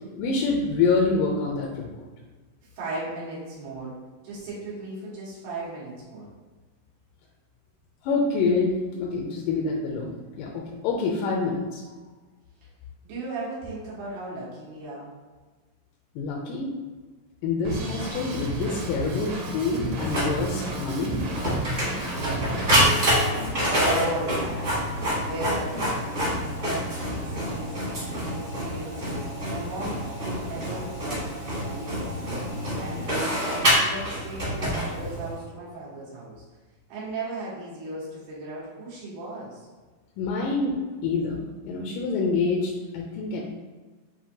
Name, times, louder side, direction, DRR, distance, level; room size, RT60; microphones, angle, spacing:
voice 1, 0.2-2.1 8.0-11.8 16.2-16.7 17.4-21.2 40.2-40.7 41.0-43.5, left 4 dB, 85° left, -1 dB, 2.2 m, -26 dB
voice 2, 2.7-4.0 4.2-6.3 13.0-15.1 22.0-24.7 25.2-26.8 27.1-27.7 28.2-32.1 32.7-36.4 36.9-39.7, right 2 dB, 90° right, -8 dB, 3.1 m, -36 dB
Drum kit, 17.6-22.8, right 1 dB, 75° right, 1.7 m, -32 dB
Printer, 20.0-35.3, equal, 50° right, 0.7 m, -27 dB
7.3 x 2.6 x 2.7 m, 1.3 s
omnidirectional pair, 3.9 m